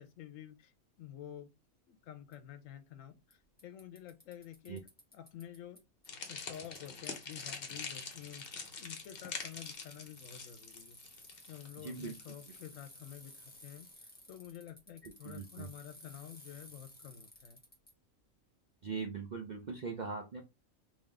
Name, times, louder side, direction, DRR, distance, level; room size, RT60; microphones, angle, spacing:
voice 1, 0.0-1.5 1.9-4.9 5.1-5.8 6.3-8.5 8.8-11.2 11.5-17.6, left 10 dB, 75° left, 1.0 m, -50 dB
Bicycle, 2.3-2.4 3.3-3.4 3.6-5.8 6.0-17.9, left 1 dB, 10° left, 0.9 m, -56 dB
sound 1, 6.1-13.3, left 5 dB, 50° left, 0.9 m, -45 dB
voice 2, 11.8-12.3 15.0-15.7 18.8-20.4, right 4 dB, 55° right, 0.5 m, -41 dB
3.6 x 2.7 x 3.2 m
omnidirectional pair, 1.4 m